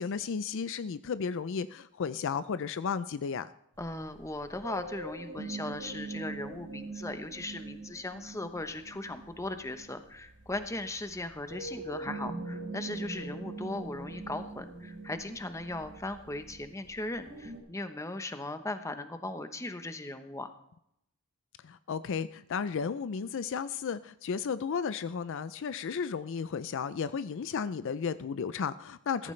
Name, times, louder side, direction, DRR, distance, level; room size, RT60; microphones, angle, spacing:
voice 1, 0.0-3.5 21.6-29.3, left 6 dB, 60° left, 14 dB, 0.4 m, -34 dB
voice 2, 3.8-20.5 29.2-29.3, left 2 dB, 15° left, 9 dB, 0.9 m, -38 dB
sound 1, 3.8-17.6, right 3 dB, 60° right, 3.9 m, -43 dB
15.0 x 14.5 x 3.2 m, 0.77 s
head